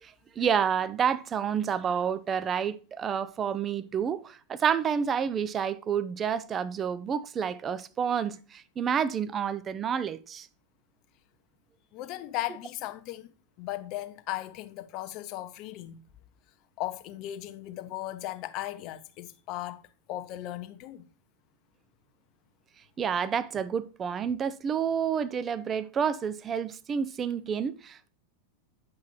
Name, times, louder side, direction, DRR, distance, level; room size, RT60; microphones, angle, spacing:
voice 1, 0.0-10.5 23.0-28.1, right 7 dB, 30° right, 0.5 m, -29 dB
voice 2, 11.9-13.3 13.6-16.0 16.8-19.8 20.1-21.1, left 15 dB, 50° left, 0.7 m, -37 dB
8.5 x 5.7 x 3.0 m
hypercardioid pair, 100°, 0 cm